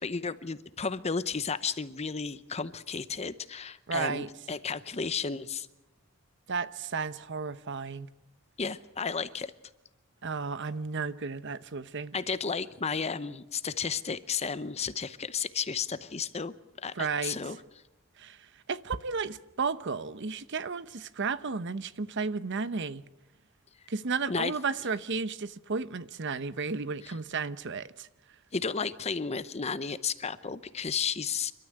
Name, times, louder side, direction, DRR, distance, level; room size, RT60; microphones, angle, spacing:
voice 1, 0.0-5.7 8.6-9.5 12.1-17.6 24.3-24.5 27.0-27.1 28.5-31.5, left 5 dB, 30° left, 0.8 m, -33 dB
voice 2, 3.9-4.3 6.5-8.1 10.2-12.1 16.9-17.4 18.2-18.4 18.7-23.0 23.9-28.1, right 4 dB, 55° right, 0.9 m, -33 dB
28.5 x 13.0 x 9.0 m
head